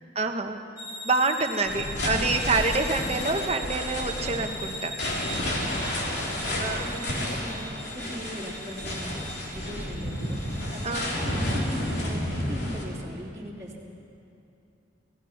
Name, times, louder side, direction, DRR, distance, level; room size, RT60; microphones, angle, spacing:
voice 1, 0.1-0.6 1.0-4.9 6.6-6.9 10.8-11.1, right 3 dB, 35° right, 5 dB, 1.3 m, -27 dB
sound 1, 0.8-12.0, equal, 15° left, 1.8 m, -41 dB
sound 2, 1.7-12.8, left 1 dB, 60° left, 3.5 m, -31 dB
voice 2, 5.6-7.7 7.9-13.8, equal, 15° right, -5 dB, 3.0 m, -40 dB
26.5 x 18.0 x 5.9 m, 2.6 s
head